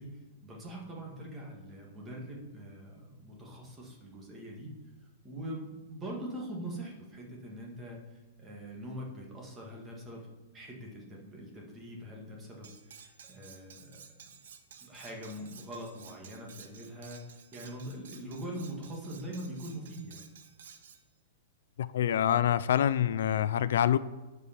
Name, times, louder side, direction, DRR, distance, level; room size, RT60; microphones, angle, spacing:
voice 1, 0.0-4.7 5.2-10.2 10.5-14.1 14.8-20.2, right 1 dB, 15° right, 1.8 m, -43 dB
Cutlery silverware, 12.6-21.0, right 7 dB, 75° right, 1.0 m, -54 dB
voice 2, 21.8-24.0, left 10 dB, 70° left, 0.3 m, -26 dB
12.0 x 4.9 x 5.1 m
supercardioid pair, 165°, 0 cm